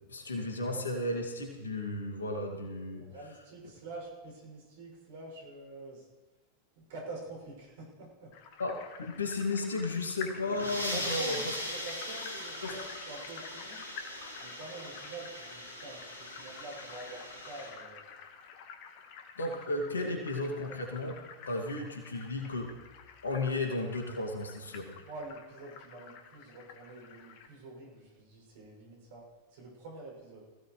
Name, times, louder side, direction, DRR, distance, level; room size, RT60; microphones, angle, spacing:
voice 1, 0.1-3.0 8.6-8.7 9.0-11.6 12.6-12.8 19.4-21.2 21.5-22.7 23.2-24.9, left 2 dB, 70° left, 2 dB, 2.2 m, -34 dB
voice 2, 3.0-6.1 6.8-8.3 10.9-13.8 14.4-18.1 25.0-29.2 29.5-30.4, right 3 dB, 55° right, -1 dB, 6.6 m, -46 dB
sound 1, 8.3-27.5, left 6 dB, 45° left, 1.5 m, -49 dB
sound 2, 10.3-17.7, left 1 dB, 90° right, 3.5 m, -40 dB
20.5 x 16.0 x 3.2 m, 1.2 s
figure-of-eight pair, 90°, 0 cm